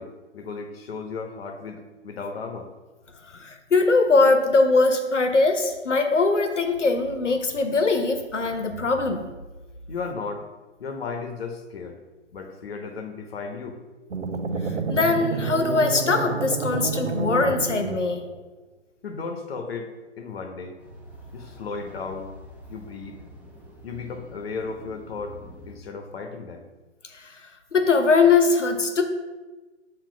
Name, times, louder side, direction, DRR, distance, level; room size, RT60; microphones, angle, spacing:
voice 1, 0.0-2.7 9.9-10.5 10.8-12.0 12.3-13.8 19.0-19.9 20.2-20.8 21.3-22.3 22.7-23.2 23.8-25.4 25.7-26.7, left 4 dB, 55° left, 4 dB, 1.1 m, -35 dB
voice 2, 3.3-9.3 14.6-18.3 27.1-27.4 27.7-29.0, left 3 dB, 85° left, 6 dB, 1.0 m, -21 dB
sound 1, 14.1-18.4, right 4 dB, 80° right, 0.7 m, -29 dB
sound 2, 20.8-25.8, equal, 5° right, 1.0 m, -46 dB
7.4 x 3.0 x 5.1 m, 1.2 s
figure-of-eight pair, 130°, 35 cm